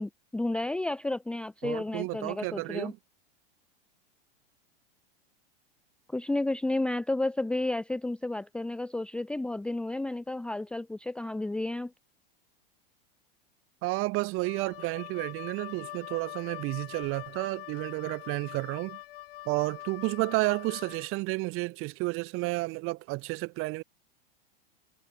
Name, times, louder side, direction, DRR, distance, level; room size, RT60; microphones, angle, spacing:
voice 1, 0.0-2.9 6.1-11.9, left 2 dB, 5° left, 0.7 m, -32 dB
voice 2, 1.6-3.0 13.8-19.0 19.5-23.8, right 23 dB, 45° right, 5.7 m, -31 dB
Wind instrument woodwind instrument, 14.4-21.1, left 16 dB, 70° left, 4.6 m, -44 dB
supercardioid pair, 125°, 29 cm